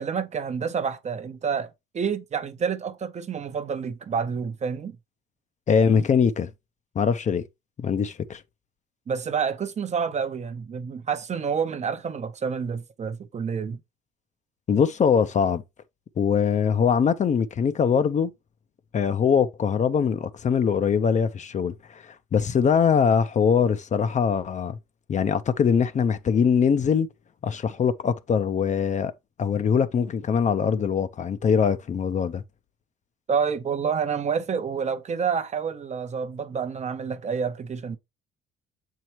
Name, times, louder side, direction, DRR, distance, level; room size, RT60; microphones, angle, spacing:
voice 1, 0.0-5.0 9.1-13.8 33.3-38.0, right 6 dB, 35° right, 0.7 m, -28 dB
voice 2, 5.7-6.5 7.0-7.4 7.8-8.4 14.7-15.6 16.2-18.3 18.9-24.8 25.1-27.1 27.4-29.1 29.4-32.4, left 6 dB, 35° left, 0.6 m, -22 dB
6.9 x 4.6 x 2.9 m
cardioid pair, 100°, 21 cm